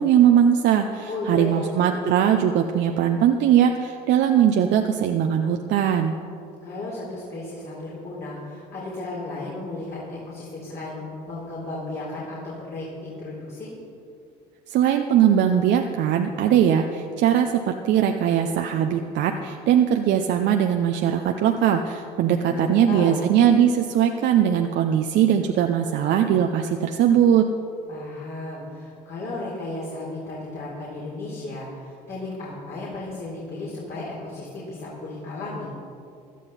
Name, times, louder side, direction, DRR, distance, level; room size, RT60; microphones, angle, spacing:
voice 1, 0.0-6.2 14.7-27.5, right 9 dB, 55° right, 4 dB, 0.8 m, -20 dB
voice 2, 1.1-1.7 6.6-13.7 22.4-23.2 27.9-35.7, left 2 dB, 50° left, -7 dB, 3.8 m, -34 dB
16.5 x 11.5 x 4.2 m, 2.6 s
hypercardioid pair, 60°, 21 cm